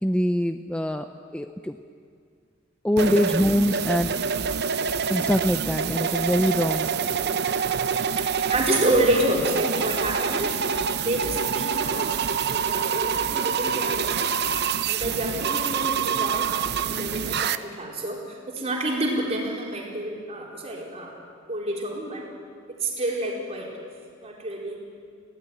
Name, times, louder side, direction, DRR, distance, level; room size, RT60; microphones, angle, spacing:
voice 1, 0.0-1.1 1.3-1.8 2.8-4.1 5.1-6.9, equal, 5° left, 7 dB, 0.5 m, -23 dB
sound 1, 3.0-17.6, right 6 dB, 55° right, 0.7 m, -26 dB
voice 2, 8.5-10.6 11.0-14.4 14.9-21.1 21.5-22.3 22.7-23.7 24.2-24.8, right 1 dB, 30° right, -2 dB, 4.4 m, -28 dB
21.5 x 17.0 x 9.5 m, 2.2 s
head